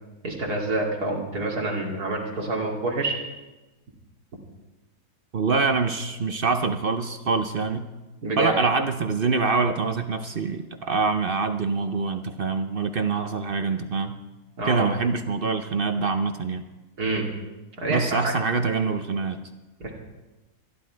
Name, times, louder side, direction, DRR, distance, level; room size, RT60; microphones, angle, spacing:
voice 1, 0.2-3.1 8.2-8.6 14.6-14.9 17.0-17.3 17.8-18.3 19.8-19.9, right 2 dB, 75° right, -1 dB, 3.0 m, -27 dB
voice 2, 5.3-7.9 8.4-14.1 14.6-16.7 17.9-19.4, right 4 dB, 50° right, 8 dB, 0.7 m, -25 dB
25.5 x 11.0 x 4.6 m, 1.1 s
omnidirectional pair, 1.6 m